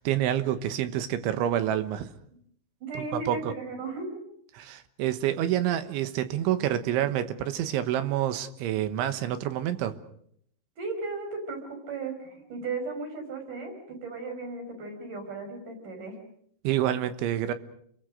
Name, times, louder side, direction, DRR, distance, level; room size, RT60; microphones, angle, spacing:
voice 1, 0.0-2.1 3.0-3.5 4.5-9.9 16.7-17.5, right 11 dB, 85° right, 10 dB, 3.6 m, -28 dB
voice 2, 2.8-4.2 10.8-16.2, right 3 dB, 45° right, 5 dB, 6.7 m, -36 dB
29.5 x 22.0 x 6.5 m, 0.69 s
omnidirectional pair, 5.4 m